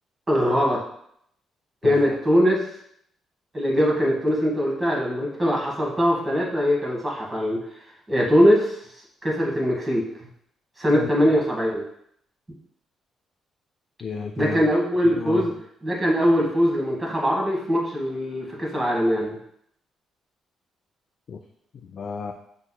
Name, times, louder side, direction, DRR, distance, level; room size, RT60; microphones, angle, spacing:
voice 1, 0.3-0.8 1.8-2.6 3.5-7.6 8.1-8.8 9.2-10.0 10.8-11.8 14.4-15.5 15.8-19.4, equal, 20° right, -3 dB, 1.3 m, -21 dB
voice 2, 14.0-14.6 15.0-15.5 21.3-21.4 21.9-22.3, left 5 dB, 55° left, 4 dB, 0.3 m, -32 dB
5.5 x 2.9 x 2.2 m, 0.70 s
cardioid pair, 90°, 0 cm